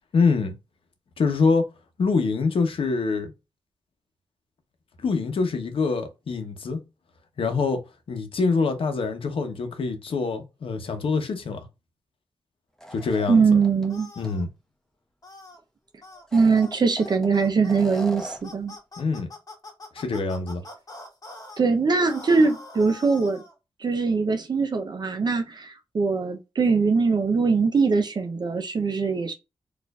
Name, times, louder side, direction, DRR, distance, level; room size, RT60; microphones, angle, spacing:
voice 1, 0.1-0.5 1.2-1.7 2.0-3.3 5.0-6.8 7.4-7.8 8.1-11.6 12.9-13.4 14.2-14.5 19.0-19.3 19.9-20.6, left 4 dB, 70° left, 0.8 m, -25 dB
sound 1, 12.8-13.9 14.2-14.3 16.2-17.3 17.7-18.6, right 1 dB, 5° left, 0.8 m, -39 dB
voice 2, 13.3-14.1 16.3-18.7 21.6-23.4 23.8-29.3, right 4 dB, 50° right, 0.6 m, -22 dB
sound 2, 13.9-14.4 15.2-15.6 16.0-16.3 16.5-16.7 17.0-21.6 22.1-23.5, left 2 dB, 40° left, 1.1 m, -44 dB
4.3 x 2.5 x 2.3 m
wide cardioid pair, 85°, 9 cm